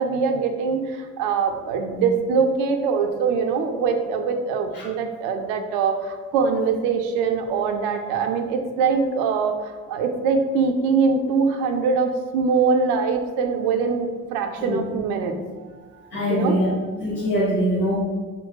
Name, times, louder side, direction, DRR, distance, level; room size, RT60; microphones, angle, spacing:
voice 1, 0.0-16.6, right 5 dB, 60° right, 5 dB, 0.6 m, -23 dB
voice 2, 16.1-16.7 17.0-18.0, equal, 75° left, -9 dB, 1.0 m, -23 dB
3.9 x 2.2 x 3.7 m, 1.4 s
figure-of-eight pair, 45°, 45 cm